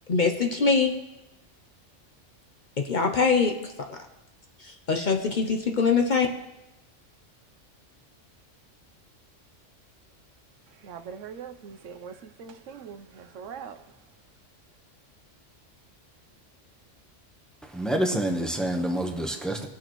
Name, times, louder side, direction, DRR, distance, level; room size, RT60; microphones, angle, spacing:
voice 1, 0.1-0.9 2.8-4.0 4.6-6.3, left 5 dB, 45° left, 0.7 m, -23 dB
voice 2, 10.8-13.8, right 7 dB, 80° right, 1.0 m, -42 dB
voice 3, 17.7-19.7, right 1 dB, ahead, 0.8 m, -27 dB
19.0 x 6.5 x 3.0 m
omnidirectional pair, 1.3 m